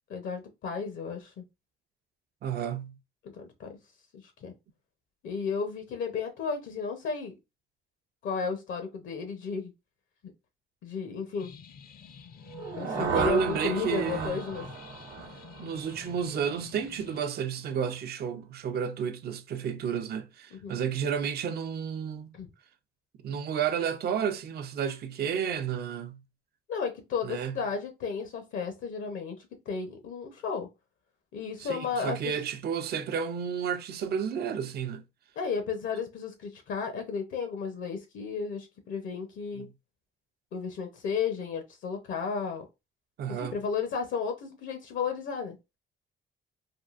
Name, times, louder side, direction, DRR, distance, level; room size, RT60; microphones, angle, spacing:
voice 1, 0.1-1.4 3.3-3.7 4.1-4.5 5.2-7.3 8.2-9.7 10.8-11.5 12.8-14.7 20.5-20.8 22.3-22.5 26.7-29.4 29.7-30.7 31.3-32.3 35.4-39.7 40.5-42.6 43.3-45.6, left 5 dB, 75° left, 0.7 m, -33 dB
voice 2, 2.4-3.0 13.0-14.4 15.6-22.3 23.2-26.2 27.2-27.6 31.6-35.0 39.5-39.7 43.2-43.6, right 7 dB, 55° right, 0.5 m, -31 dB
sound 1, 11.4-17.2, left 6 dB, 50° left, 0.4 m, -48 dB
sound 2, 12.4-16.4, right 5 dB, 90° right, 0.8 m, -35 dB
3.6 x 2.3 x 2.4 m
cardioid pair, 90°, 20 cm